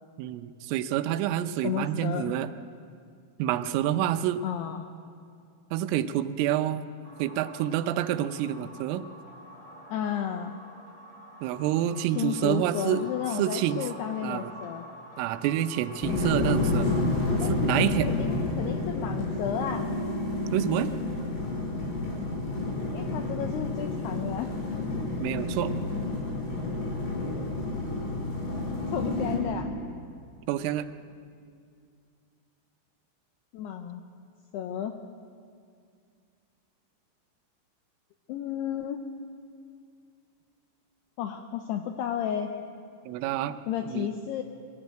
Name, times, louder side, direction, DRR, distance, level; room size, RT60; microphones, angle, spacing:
voice 1, 0.2-2.5 3.4-4.4 5.7-6.8 7.2-9.0 11.4-13.0 13.4-13.9 14.2-14.5 15.2-16.9 17.5-18.1 20.5-20.9 25.2-25.7 30.5-30.9 43.1-43.6 43.9-44.1, right 12 dB, 85° right, 11 dB, 3.2 m, -28 dB
voice 2, 1.6-2.4 4.4-4.9 9.9-10.5 12.2-14.9 17.4-19.9 22.9-24.5 28.9-29.7 33.5-34.0 34.5-35.0 38.3-39.0 41.2-42.6 43.7-44.4, left 9 dB, 85° left, 6 dB, 2.3 m, -32 dB
sound 1, 7.0-17.0, equal, 10° left, 3.4 m, -47 dB
sound 2, 16.0-29.4, left 2 dB, 55° left, 6.9 m, -29 dB
22.5 x 15.0 x 8.9 m, 2.3 s
omnidirectional pair, 5.7 m